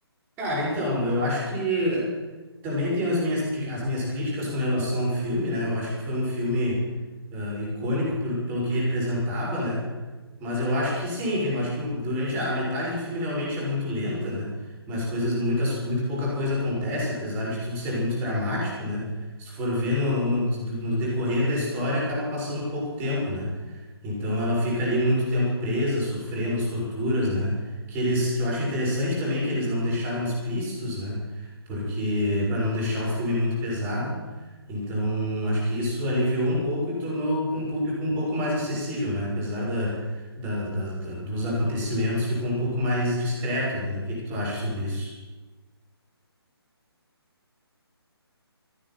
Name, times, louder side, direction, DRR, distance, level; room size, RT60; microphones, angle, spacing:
voice 1, 0.4-2.1 2.6-6.8 7.3-9.9 10.4-14.5 14.9-19.1 19.4-27.6 27.9-34.2 34.7-45.1, left 1 dB, 15° right, -3 dB, 5.4 m, -27 dB
14.0 x 10.0 x 9.1 m, 1.2 s
figure-of-eight pair, 145°, 14 cm